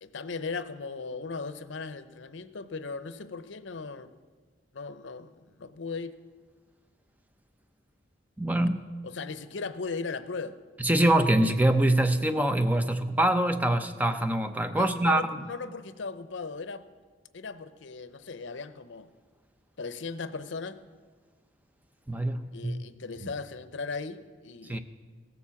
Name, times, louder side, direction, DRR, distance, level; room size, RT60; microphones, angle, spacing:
voice 1, 0.0-4.1 4.7-6.1 9.0-10.6 14.7-16.9 17.3-19.1 19.8-20.8 22.5-24.8, left 4 dB, 75° left, 12 dB, 0.7 m, -37 dB
voice 2, 8.4-8.8 10.8-15.3 22.1-22.8 24.7-24.8, right 1 dB, 10° right, 8 dB, 0.5 m, -24 dB
16.5 x 7.1 x 7.1 m, 1.5 s
head